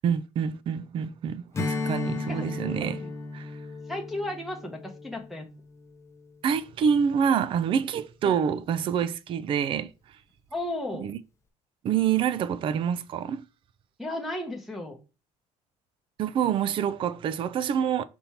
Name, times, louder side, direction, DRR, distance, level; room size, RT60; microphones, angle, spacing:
voice 1, 0.0-3.0 3.3-3.6 6.4-10.2 10.9-11.2 11.8-13.4 16.2-18.0, right 7 dB, 40° right, 0.4 m, -27 dB
Strum, 1.5-6.3, left 4 dB, 20° left, 0.7 m, -35 dB
voice 2, 3.9-5.5 8.2-8.4 10.5-11.1 14.0-15.0, left 1 dB, ahead, 1.0 m, -34 dB
5.4 x 4.3 x 4.3 m
cardioid pair, 145°, 13 cm